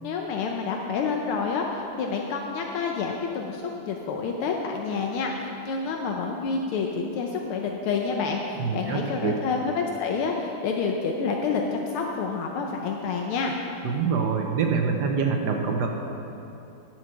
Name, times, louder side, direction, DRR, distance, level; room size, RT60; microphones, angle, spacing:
voice 1, 0.0-13.6, left 5 dB, 80° left, 1 dB, 1.6 m, -28 dB
voice 2, 8.6-9.3 13.8-15.9, right 5 dB, 60° right, 2 dB, 1.2 m, -25 dB
10.5 x 6.3 x 7.7 m, 2.8 s
omnidirectional pair, 2.4 m